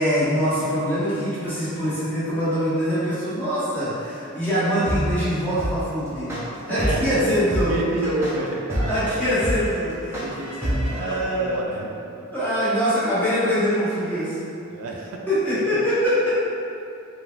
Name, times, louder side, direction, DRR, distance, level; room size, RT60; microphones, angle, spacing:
voice 1, 0.0-6.4 6.7-7.7 8.9-10.2 10.6-11.6 12.3-14.4 15.3-16.4, equal, 10° left, -13 dB, 0.9 m, -23 dB
sound 1, 4.9-11.0, equal, 10° right, 0.4 m, -26 dB
voice 2, 6.7-9.2 10.1-12.3 14.7-15.3 15.7-15.8, right 2 dB, 80° right, -1 dB, 0.3 m, -30 dB
3.3 x 2.2 x 2.4 m, 2.6 s
head